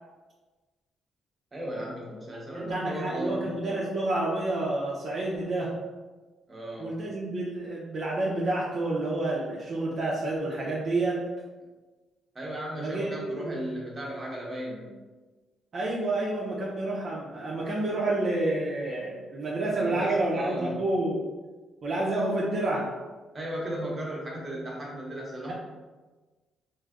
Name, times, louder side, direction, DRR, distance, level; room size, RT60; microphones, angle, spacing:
voice 1, 1.5-3.5 6.5-6.9 12.3-15.0 19.7-20.8 23.3-25.5, right 1 dB, 25° right, -4 dB, 0.9 m, -36 dB
voice 2, 2.5-5.7 6.8-11.2 12.8-13.6 15.7-21.2 21.8-22.9, right 2 dB, 50° right, -6 dB, 0.6 m, -29 dB
3.2 x 2.6 x 2.4 m, 1.3 s
cardioid pair, 90°, 0 cm